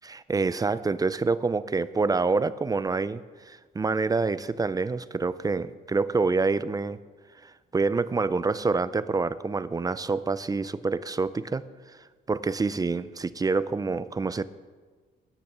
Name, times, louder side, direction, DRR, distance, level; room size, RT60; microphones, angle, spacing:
voice 1, 0.0-7.0 7.4-12.0 12.3-14.4, right 4 dB, 20° right, 16 dB, 0.4 m, -27 dB
10.5 x 6.7 x 6.6 m, 1.4 s
cardioid pair, 90°, 20 cm